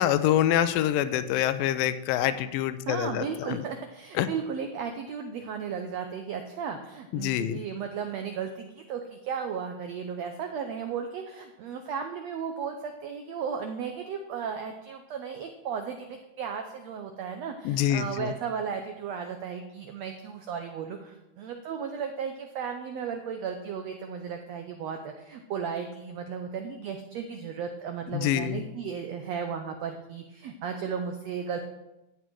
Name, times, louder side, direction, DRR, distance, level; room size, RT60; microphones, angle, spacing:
voice 1, 0.0-3.6 4.2-4.3 7.1-7.6 17.7-18.3 28.1-28.6, left 11 dB, 90° left, 12 dB, 2.3 m, -26 dB
voice 2, 2.9-31.6, right 6 dB, 85° right, 5 dB, 1.5 m, -35 dB
12.0 x 8.2 x 4.6 m, 0.95 s
omnidirectional pair, 4.0 m